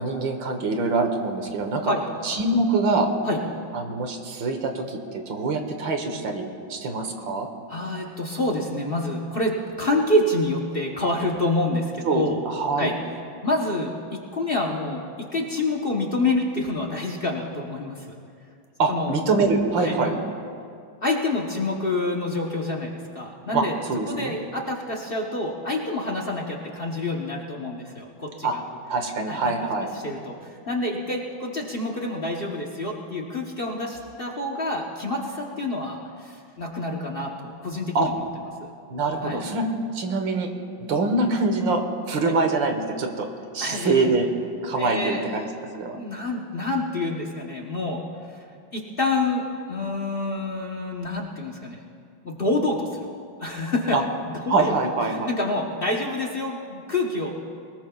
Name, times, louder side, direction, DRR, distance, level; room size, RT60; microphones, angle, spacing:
voice 1, 0.0-1.9 2.2-3.1 3.7-7.5 12.0-12.9 18.8-20.1 23.5-24.4 28.4-28.6 28.9-29.9 38.0-38.1 38.9-39.7 39.9-40.5 40.9-43.3 43.5-44.3 44.6-45.5 45.7-46.0 53.9-54.0 54.5-55.3, right 3 dB, 80° right, 5 dB, 2.0 m, -24 dB
voice 2, 7.7-12.4 12.8-12.9 13.4-18.1 18.9-19.1 19.8-20.2 21.0-23.8 24.1-28.6 29.3-29.5 29.9-38.1 38.6-38.7 39.2-39.4 42.2-42.3 43.6-44.1 44.8-45.3 45.9-48.0 48.3-48.4 48.7-49.4 49.7-51.8 52.2-53.1 53.4-54.0 54.5-54.7 55.1-57.3, left 2 dB, 35° left, 0 dB, 1.0 m, -27 dB
22.0 x 19.5 x 2.4 m, 2.4 s
omnidirectional pair, 2.0 m